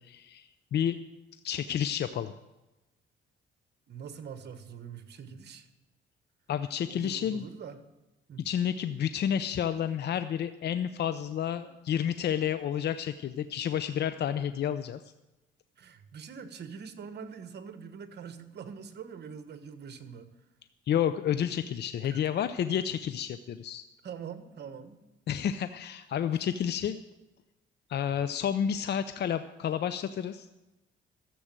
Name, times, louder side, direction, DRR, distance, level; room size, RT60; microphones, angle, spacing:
voice 1, 0.1-1.0 1.4-2.3 6.5-7.4 8.4-15.0 20.9-23.8 25.3-27.0 27.9-30.5, left 9 dB, 55° left, 11 dB, 0.6 m, -30 dB
voice 2, 3.9-5.7 6.9-7.8 8.3-8.4 15.8-20.3 22.0-22.2 24.0-25.0, right 7 dB, 60° right, 10 dB, 1.4 m, -44 dB
13.5 x 7.8 x 7.6 m, 1.0 s
cardioid pair, 90°, 20 cm